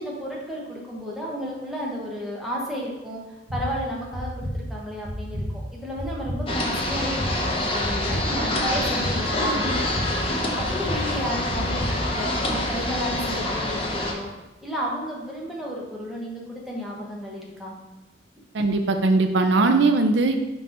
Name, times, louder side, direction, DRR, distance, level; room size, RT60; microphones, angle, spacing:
voice 1, 0.0-3.2 3.5-10.1 10.5-14.3 14.6-17.8, equal, ahead, -4 dB, 1.1 m, -33 dB
sound 1, 3.5-3.6 4.1-4.5 5.0-5.4 6.0-6.4 6.9-7.3 7.8-8.2 8.7-9.1 9.6-10.1 10.6-11.0 11.5-11.9, equal, 25° right, 1.0 m, -31 dB
sound 2, 6.5-14.1, left 1 dB, 30° left, 0.7 m, -26 dB
voice 2, 18.5-20.3, right 3 dB, 75° right, 6 dB, 0.5 m, -20 dB
6.0 x 3.2 x 5.1 m, 1.0 s
head